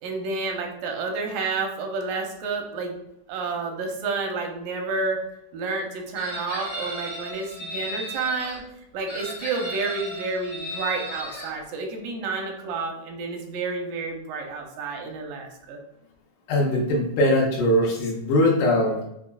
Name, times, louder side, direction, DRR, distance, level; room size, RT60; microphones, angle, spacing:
voice 1, 0.0-3.0 3.3-5.2 5.5-8.6 8.9-15.8, right 4 dB, 85° right, 2 dB, 2.3 m, -30 dB
Chicken rooster, 6.1-8.6 9.1-11.5, equal, 55° left, 0.8 m, -35 dB
voice 2, 16.5-19.0, left 1 dB, 75° left, -1 dB, 2.2 m, -21 dB
6.0 x 2.0 x 2.3 m, 0.80 s
omnidirectional pair, 3.8 m